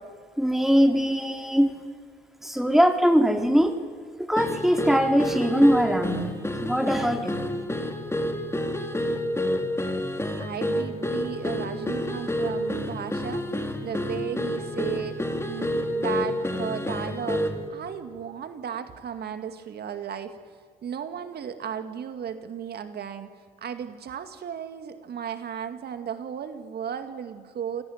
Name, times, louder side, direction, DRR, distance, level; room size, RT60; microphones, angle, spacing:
voice 1, 0.4-1.7 2.4-3.8 4.2-6.3 6.6-7.5, equal, ahead, 5 dB, 4.4 m, -21 dB
sound 1, 4.4-17.7, left 1 dB, 15° left, 4.7 m, -29 dB
voice 2, 10.4-20.4 20.8-27.8, right 8 dB, 60° right, 9 dB, 2.2 m, -35 dB
28.5 x 18.0 x 9.3 m, 2.2 s
hypercardioid pair, 45°, 19 cm